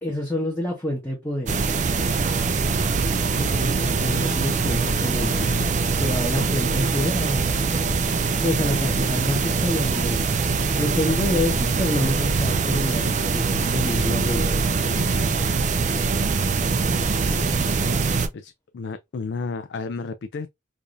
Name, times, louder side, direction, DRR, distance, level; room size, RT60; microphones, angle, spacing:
voice 1, 0.0-1.6 3.4-5.6 6.0-7.6 8.4-10.4 10.7-14.6, left 1 dB, 10° left, 0.9 m, -27 dB
sound 1, 1.5-18.3, right 4 dB, 40° right, 0.4 m, -23 dB
voice 2, 3.2-4.3 18.3-20.5, left 4 dB, 65° left, 0.3 m, -33 dB
4.8 x 2.6 x 2.5 m
head